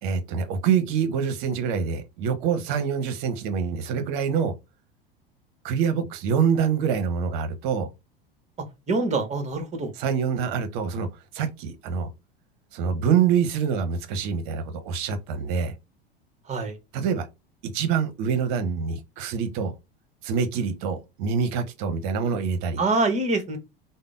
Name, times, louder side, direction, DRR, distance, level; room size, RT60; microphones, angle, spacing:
voice 1, 0.0-4.5 5.6-7.9 10.0-12.1 12.7-15.7 16.9-17.3 17.6-19.7 20.2-22.8, right 7 dB, 55° right, 0.8 m, -25 dB
voice 2, 8.9-9.9 16.5-16.8 22.8-23.6, right 3 dB, 25° right, 1.0 m, -25 dB
3.4 x 2.1 x 2.5 m
figure-of-eight pair, 85°, 29 cm